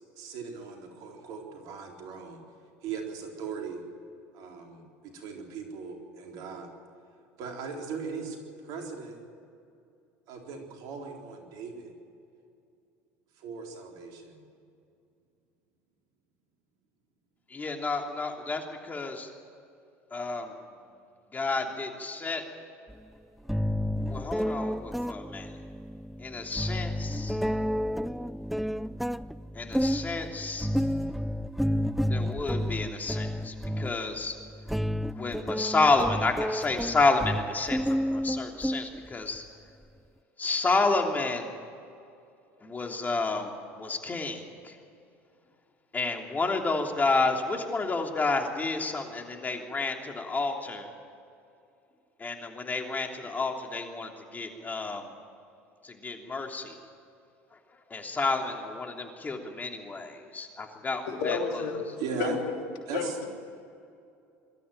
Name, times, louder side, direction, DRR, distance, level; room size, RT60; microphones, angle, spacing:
voice 1, 0.2-2.4 2.8-3.8 4.3-6.7 7.4-8.4 8.6-9.2 10.3-11.9 13.4-14.4 62.0-62.3 62.9-63.2, right 6 dB, 65° right, 2 dB, 4.0 m, -38 dB
voice 2, 17.5-19.3 20.1-20.5 21.3-22.4 24.1-25.5 26.2-27.4 29.5-30.7 32.0-34.4 35.1-39.4 40.4-41.5 42.6-44.7 45.9-50.9 52.2-55.1 55.8-56.8 57.9-61.6, left 3 dB, 25° left, 3 dB, 3.2 m, -30 dB
sound 1, 22.9-23.0 23.5-39.4, equal, ahead, 0.5 m, -31 dB
voice 3, 61.1-62.5 62.9-63.1, left 5 dB, 70° left, 3 dB, 3.0 m, -31 dB
23.0 x 13.5 x 9.1 m, 2.5 s
hypercardioid pair, 80°, 7 cm